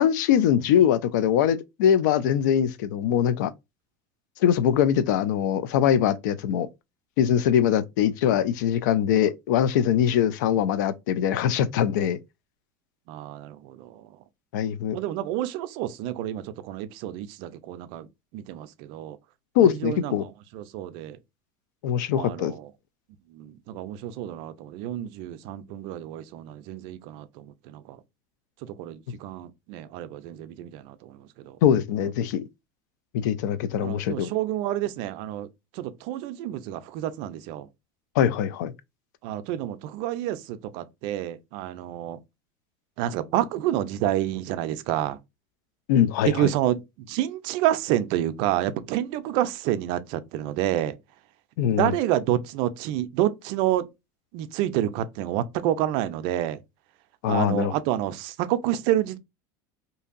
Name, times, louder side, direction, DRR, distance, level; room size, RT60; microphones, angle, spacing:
voice 1, 0.0-3.5 4.4-6.7 7.2-12.2 14.5-15.0 19.6-20.2 21.8-22.5 31.6-32.4 33.1-34.3 38.2-38.7 45.9-46.5 51.6-51.9 57.2-57.8, left 9 dB, 85° left, 0.4 m, -22 dB
voice 2, 13.1-14.1 14.9-18.1 18.3-19.2 19.6-21.2 22.1-22.7 23.3-28.0 28.6-31.2 31.4-31.6 33.8-35.5 35.7-37.7 39.2-42.2 43.0-45.2 46.3-51.0 51.7-53.9 54.3-56.6 57.3-59.2, right 12 dB, 60° right, 0.4 m, -29 dB
2.7 x 2.6 x 2.4 m
supercardioid pair, 140°, 10 cm